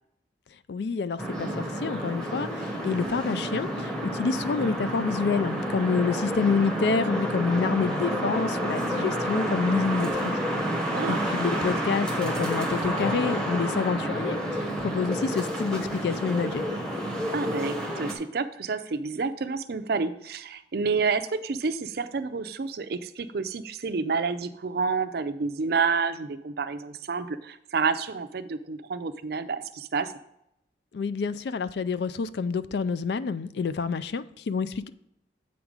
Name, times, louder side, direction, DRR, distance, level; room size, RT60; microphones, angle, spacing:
voice 1, 0.7-10.3 11.1-16.6 30.9-34.9, left 5 dB, 65° left, 15 dB, 0.4 m, -28 dB
sound 1, 1.2-18.1, equal, 5° left, 1.0 m, -29 dB
voice 2, 10.9-11.2 17.3-30.1, right 4 dB, 60° right, 12 dB, 0.5 m, -29 dB
8.0 x 5.1 x 4.7 m, 0.80 s
head